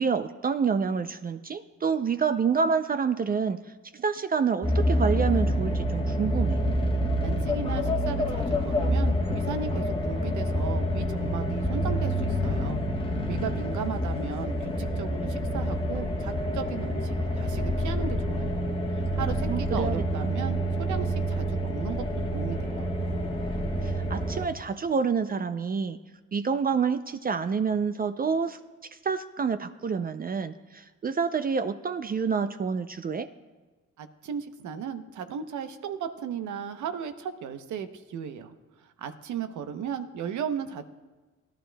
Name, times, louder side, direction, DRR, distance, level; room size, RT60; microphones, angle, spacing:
voice 1, 0.0-3.6 3.9-6.6 19.5-20.3 23.8-26.0 26.3-28.6 29.0-33.3, right 5 dB, 30° right, 10 dB, 0.4 m, -28 dB
sound 1, 4.6-24.5, equal, 20° left, 1.2 m, -27 dB
voice 2, 7.2-12.8 13.3-18.6 18.9-20.6 20.9-22.0 22.3-22.9 34.0-38.5 39.0-40.9, right 7 dB, 75° right, 9 dB, 0.8 m, -36 dB
17.5 x 11.0 x 2.2 m, 1.3 s
cardioid pair, 90°, 30 cm